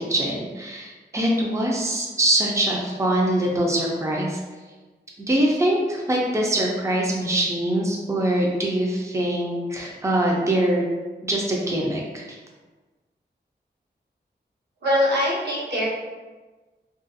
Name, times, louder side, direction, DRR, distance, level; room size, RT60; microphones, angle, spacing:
voice 1, 0.0-4.4 5.2-10.9 11.2-12.4, right 1 dB, 15° right, -2 dB, 0.5 m, -23 dB
voice 2, 14.8-15.8, left 1 dB, 70° right, -8 dB, 1.1 m, -22 dB
2.5 x 2.3 x 2.6 m, 1.3 s
wide cardioid pair, 75°, 18 cm